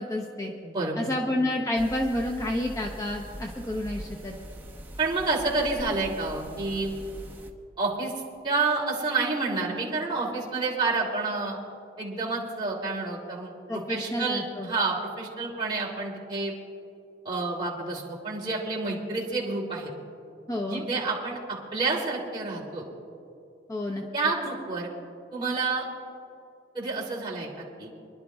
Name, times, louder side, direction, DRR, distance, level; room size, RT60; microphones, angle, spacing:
voice 1, 0.0-0.5 1.0-4.3 13.7-14.7 20.5-20.9 23.7-24.0, left 1 dB, 20° left, 0 dB, 0.7 m, -29 dB
voice 2, 0.6-1.1 5.0-6.9 7.8-8.1 8.4-11.6 12.0-16.5 17.2-19.9 20.7-22.8 24.1-24.9 25.3-25.8 26.7-27.9, right 3 dB, 25° right, -5 dB, 3.0 m, -29 dB
sound 1, 1.7-7.5, right 1 dB, 10° right, 0.9 m, -42 dB
27.0 x 11.5 x 2.3 m, 2.6 s
head